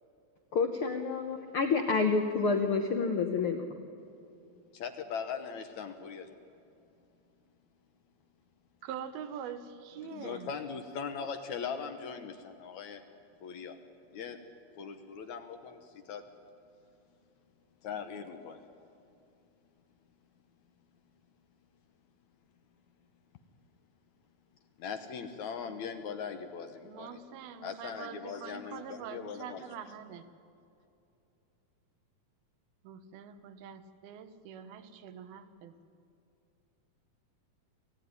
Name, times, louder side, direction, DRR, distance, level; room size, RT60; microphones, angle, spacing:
voice 1, 0.5-3.9, left 4 dB, 85° left, 5 dB, 1.2 m, -29 dB
voice 2, 4.7-6.3 10.0-13.0 13.4-13.8 14.1-14.4 14.8-16.2 17.8-18.6 24.8-27.2 27.6-29.6, left 6 dB, 65° left, 7 dB, 2.1 m, -40 dB
voice 3, 8.8-10.5 26.8-30.3 32.8-35.7, right 8 dB, 85° right, 10 dB, 3.0 m, -44 dB
26.0 x 16.5 x 9.6 m, 2.7 s
omnidirectional pair, 4.3 m